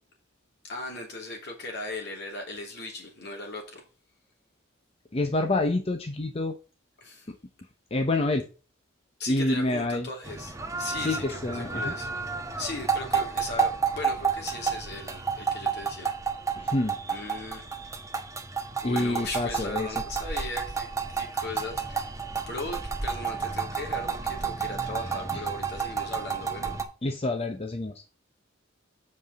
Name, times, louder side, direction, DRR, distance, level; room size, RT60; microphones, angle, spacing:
voice 1, 0.6-3.8 7.0-7.3 9.2-10.5 10.8-12.1 12.6-16.1 17.1-17.6 17.9-18.0 18.8-22.2 22.4-26.7, left 2 dB, 60° left, 3.1 m, -38 dB
voice 2, 5.1-6.5 7.3-7.4 7.9-8.5 9.3-10.1 11.0-11.9 16.6-17.0 18.8-20.0 25.3-25.4 27.0-27.9, left 2 dB, 30° left, 0.8 m, -27 dB
sound 1, 10.2-26.8, right 5 dB, 15° right, 1.1 m, -31 dB
8.1 x 5.5 x 4.1 m
head